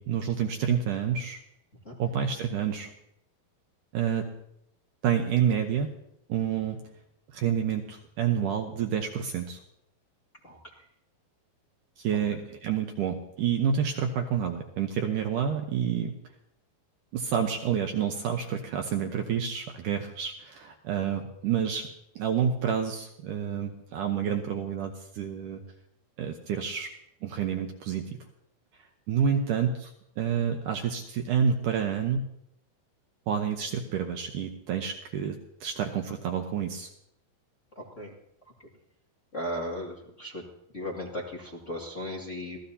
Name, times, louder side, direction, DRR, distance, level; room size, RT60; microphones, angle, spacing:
voice 1, 0.0-1.4 2.0-2.9 3.9-4.3 5.0-5.9 6.3-6.8 7.3-9.6 12.0-16.1 17.1-21.9 22.2-25.6 26.2-26.9 27.2-28.0 29.1-29.9 30.2-32.2 33.3-36.9, right 8 dB, 70° right, 4 dB, 2.2 m, -28 dB
voice 2, 37.8-38.1 39.3-40.4 40.7-42.6, equal, 25° left, -3 dB, 1.8 m, -36 dB
26.5 x 17.0 x 2.8 m, 0.75 s
omnidirectional pair, 4.4 m